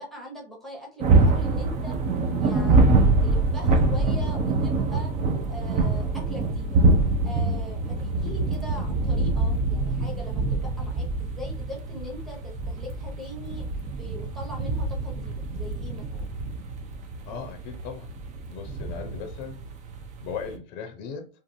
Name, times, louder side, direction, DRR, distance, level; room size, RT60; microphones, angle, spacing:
voice 1, 0.0-2.0 2.4-5.1 5.4-6.8 7.2-13.6 14.0-16.3, left 1 dB, ahead, 0.9 m, -41 dB
sound 1, 1.0-20.6, right 3 dB, 25° right, 0.4 m, -25 dB
voice 2, 17.3-18.1 18.5-19.6 20.2-21.3, left 6 dB, 40° left, 0.6 m, -37 dB
2.5 x 2.5 x 2.6 m
hypercardioid pair, 105°, 29 cm